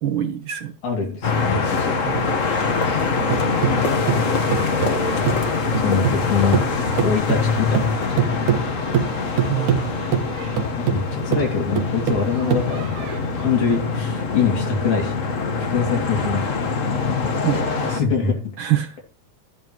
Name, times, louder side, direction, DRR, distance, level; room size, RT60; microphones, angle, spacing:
voice 1, 0.0-0.7 2.0-2.4 9.5-10.3 17.4-18.0 18.6-19.0, right 11 dB, 60° right, 8 dB, 1.3 m, -26 dB
voice 2, 0.8-1.9 4.6-5.0 5.7-6.6 7.0-8.0 8.3-8.5 8.8-8.9 10.9-13.1 13.4-15.3 15.6-16.5 18.0-18.4, left 5 dB, 75° left, 1 dB, 4.1 m, -24 dB
sound 1, 1.2-18.0, left 4 dB, 45° left, 1.0 m, -24 dB
sound 2, 2.9-6.3 6.5-13.2, right 8 dB, 85° right, 2.9 m, -24 dB
13.0 x 10.5 x 3.1 m, 0.31 s
omnidirectional pair, 3.4 m